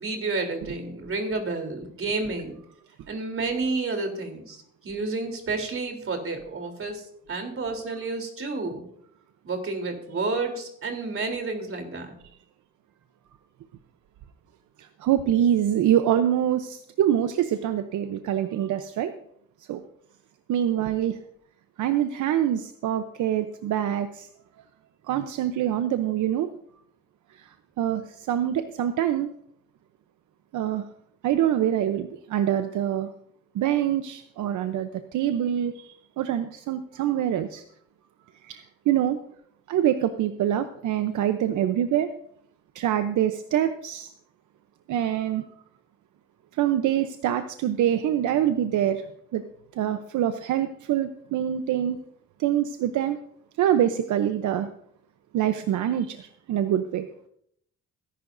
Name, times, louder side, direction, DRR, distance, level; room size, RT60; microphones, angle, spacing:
voice 1, 0.0-2.5 3.1-4.6 4.8-7.0 7.3-8.8 9.4-12.2, right 3 dB, 45° right, 4 dB, 3.5 m, -30 dB
voice 2, 15.0-19.1 19.7-19.8 20.5-21.2 21.8-24.3 25.1-26.5 27.8-28.0 28.3-29.3 30.5-30.8 31.2-33.1 33.5-37.6 38.4-39.2 39.7-42.1 42.7-44.1 44.9-45.4 46.6-49.0 49.3-49.4 49.8-52.0 52.4-53.2 53.6-54.7 55.3-57.1, right 10 dB, 80° right, 9 dB, 0.8 m, -25 dB
20.5 x 11.0 x 2.6 m, 0.69 s
cardioid pair, 90°, 30 cm